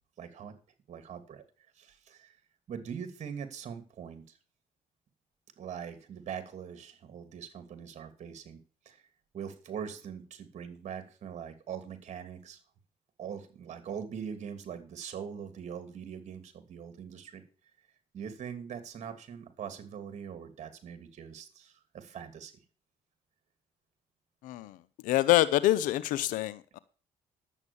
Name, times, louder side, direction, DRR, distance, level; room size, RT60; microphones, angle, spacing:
voice 1, 0.2-0.5 0.9-1.4 1.8-2.3 2.7-4.4 5.6-8.6 8.8-9.0 9.3-12.6 13.2-17.4 18.1-22.5, right 7 dB, 60° right, 2.7 m, -42 dB
voice 2, 25.0-26.8, left 15 dB, 85° left, 0.7 m, -26 dB
11.0 x 8.1 x 7.0 m
supercardioid pair, 75°, 13 cm